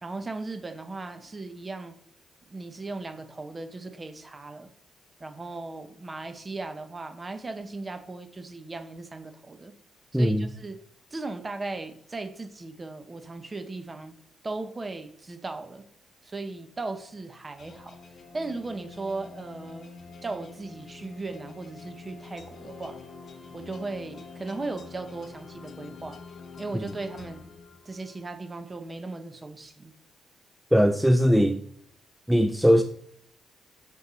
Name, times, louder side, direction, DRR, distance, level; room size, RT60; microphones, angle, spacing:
voice 1, 0.0-2.0 2.5-4.7 5.2-9.7 10.1-10.8 11.1-14.2 14.4-15.9 16.2-18.0 18.3-19.9 20.2-23.0 23.5-26.2 26.6-27.4 27.8-29.9, right 3 dB, 25° right, 0.9 m, -37 dB
voice 2, 10.1-10.5 26.7-26.8 30.7-31.6 32.3-32.8, equal, 5° right, 0.4 m, -20 dB
sound 1, 17.6-28.2, left 4 dB, 50° left, 1.0 m, -46 dB
8.1 x 6.5 x 4.1 m
cardioid pair, 110°, 0 cm